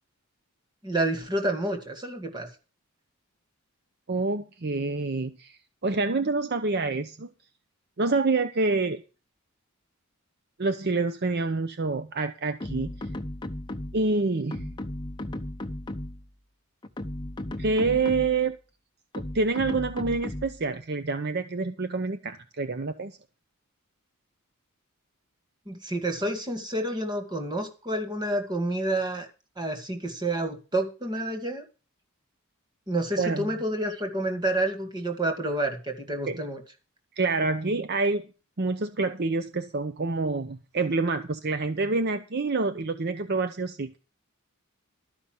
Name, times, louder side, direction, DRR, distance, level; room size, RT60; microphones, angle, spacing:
voice 1, 0.8-2.5 25.7-29.3 29.6-31.6 32.9-36.6, right 1 dB, 20° right, 5 dB, 2.1 m, -29 dB
voice 2, 4.1-7.3 8.0-9.0 10.6-13.1 13.9-14.7 17.6-18.6 19.2-23.2 33.2-33.5 36.3-36.4 37.2-38.3 38.6-44.0, right 3 dB, 50° right, 11 dB, 0.7 m, -27 dB
sound 1, 12.6-14.1 14.5-16.3 16.8-18.5 19.1-20.7, left 1 dB, 20° left, 0.8 m, -35 dB
12.5 x 5.6 x 7.6 m, 0.33 s
head